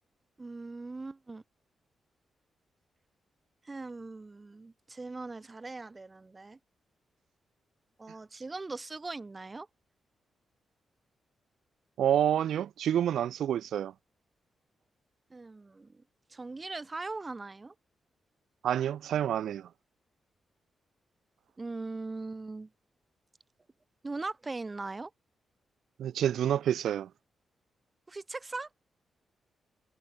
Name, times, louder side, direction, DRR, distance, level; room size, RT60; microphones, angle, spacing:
voice 1, 0.4-1.4 3.6-6.6 8.0-9.7 15.3-16.0 16.3-17.7 21.6-22.7 24.0-25.1 28.1-28.7, right 3 dB, 20° right, 0.8 m, -40 dB
voice 2, 12.0-13.9 18.6-19.7 26.0-27.1, right 10 dB, 80° right, 0.5 m, -28 dB
wide cardioid pair, 175°, 0 cm